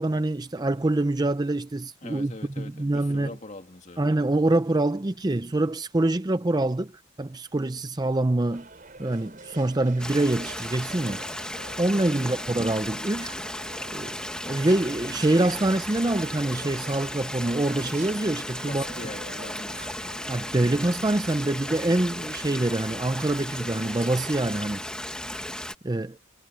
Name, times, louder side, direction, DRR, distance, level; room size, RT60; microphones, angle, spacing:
voice 1, 0.0-3.3 4.0-6.9 7.2-8.7 9.0-11.2 11.8-13.3 13.9-14.2 14.5-18.8 20.3-24.8 25.8-26.2, right 2 dB, 20° right, 0.5 m, -25 dB
voice 2, 2.0-4.1 12.1-12.5 18.6-20.4, left 2 dB, 35° left, 2.1 m, -43 dB
sound 1, 8.5-24.7, right 3 dB, 45° right, 4.8 m, -46 dB
Stream, 10.0-25.7, left 1 dB, 5° left, 1.5 m, -35 dB
head